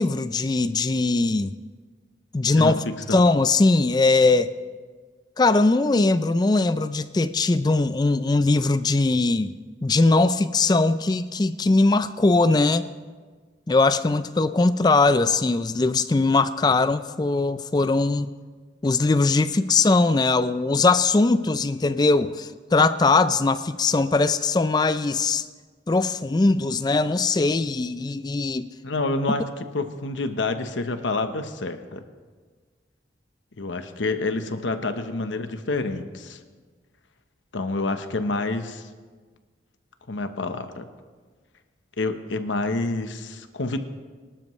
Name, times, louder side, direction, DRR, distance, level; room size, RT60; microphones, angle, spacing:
voice 1, 0.0-1.5 2.3-2.8 3.1-4.5 5.4-9.5 9.8-12.9 13.7-18.3 18.8-25.4 25.9-28.7, left 3 dB, 20° left, 0.3 m, -20 dB
voice 2, 2.6-3.3 28.8-32.0 33.6-36.4 37.5-38.9 40.1-40.9 42.0-43.8, left 2 dB, 90° left, 1.0 m, -28 dB
24.0 x 12.5 x 3.2 m
head